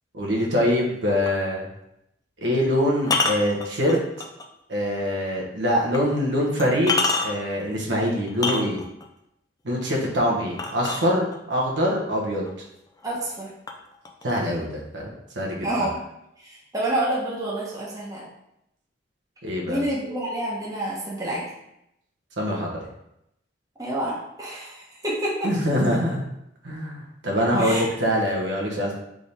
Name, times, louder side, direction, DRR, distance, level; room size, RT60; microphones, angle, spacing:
voice 1, 0.1-1.7 2.4-4.0 4.7-6.9 7.2-8.8 9.6-12.5 14.2-15.1 15.3-15.9 19.4-19.8 22.4-22.7 25.4-26.2 26.6-28.9, equal, 70° right, -2 dB, 1.0 m, -24 dB
sound 1, 1.3-1.4 3.0-4.5 5.0-5.1 5.9-6.0 6.6-7.5 8.3-9.1 10.6-11.5 12.5-12.6 13.0-13.4 13.7-14.6, left 3 dB, 20° left, 0.4 m, -26 dB
voice 2, 13.0-13.5 15.6-16.0 16.4-18.3 19.7-21.4 23.8-25.5 27.6-27.8, right 1 dB, 20° right, -5 dB, 0.9 m, -28 dB
3.7 x 3.4 x 4.2 m, 0.82 s
head